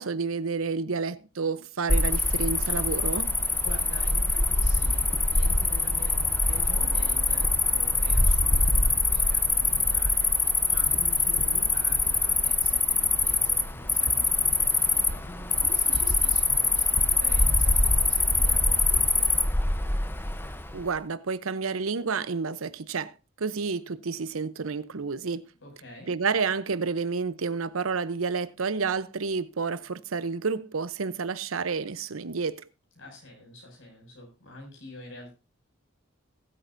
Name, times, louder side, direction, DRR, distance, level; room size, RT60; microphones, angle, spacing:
voice 1, 0.0-3.3 20.7-23.1 23.4-25.5 26.1-32.7, right 5 dB, 80° right, 0.7 m, -30 dB
Cricket, 1.9-20.8, left 3 dB, 10° left, 0.7 m, -24 dB
voice 2, 3.6-19.3 25.6-26.1 33.0-35.3, left 1 dB, 65° left, 6.2 m, -47 dB
19.5 x 8.5 x 2.6 m
head